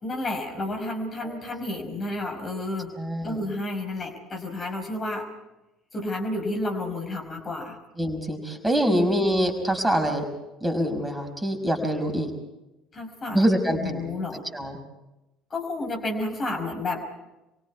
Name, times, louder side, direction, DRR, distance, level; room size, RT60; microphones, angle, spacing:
voice 1, 0.0-2.9 3.2-5.2 5.9-7.8 8.9-9.1 12.9-14.4 15.5-17.0, left 2 dB, 35° left, 3 dB, 5.2 m, -31 dB
voice 2, 3.0-3.4 8.0-10.2 10.6-12.3 13.3-14.0 14.5-14.8, equal, 10° right, 4 dB, 5.6 m, -25 dB
28.5 x 24.0 x 4.7 m, 0.99 s
figure-of-eight pair, 60°, 0 cm